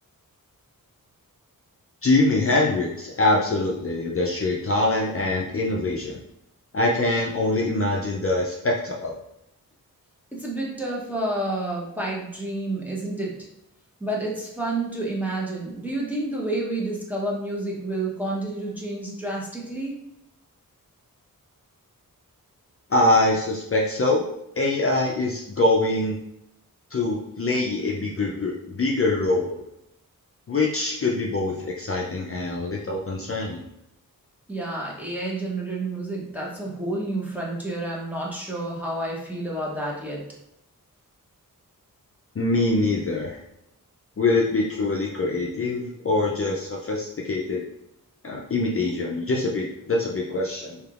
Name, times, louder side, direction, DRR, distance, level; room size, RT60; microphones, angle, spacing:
voice 1, 2.0-6.2 6.7-9.1 22.9-24.3 24.6-26.2 26.9-29.6 30.5-33.6 42.4-43.4 44.2-47.7 48.2-50.8, left 2 dB, 40° left, -2 dB, 0.5 m, -24 dB
voice 2, 10.3-13.3 14.0-20.0 34.5-40.2, right 2 dB, 5° right, -4 dB, 0.8 m, -29 dB
3.3 x 2.8 x 2.4 m, 0.83 s
wide cardioid pair, 120°, 35 cm